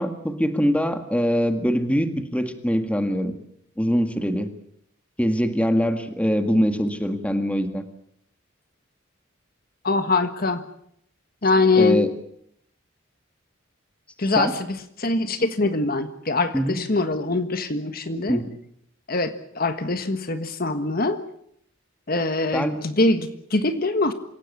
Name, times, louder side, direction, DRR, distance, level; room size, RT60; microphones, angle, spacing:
voice 1, 0.0-3.3 3.8-4.5 5.2-7.8 11.8-12.1 14.3-14.5 16.5-16.8 18.3-18.5 22.5-22.8, equal, 5° left, 7 dB, 1.9 m, -23 dB
voice 2, 9.8-10.7 11.4-12.0 14.2-18.4 19.1-21.2 22.1-24.1, left 3 dB, 45° left, 9 dB, 1.5 m, -23 dB
26.5 x 16.5 x 8.4 m, 0.71 s
head